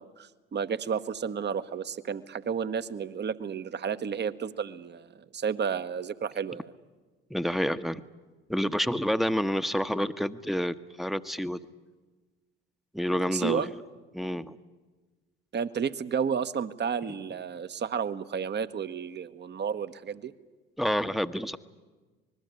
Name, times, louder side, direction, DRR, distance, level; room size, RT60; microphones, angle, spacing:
voice 1, 0.0-6.7 13.3-13.7 15.5-20.3, right 7 dB, 35° right, 13 dB, 1.2 m, -32 dB
voice 2, 7.3-8.0 8.5-11.6 12.9-13.7 14.1-14.6 20.8-21.6, equal, ahead, 10 dB, 1.1 m, -28 dB
26.0 x 21.0 x 8.4 m, 1.3 s
figure-of-eight pair, 55°, 30 cm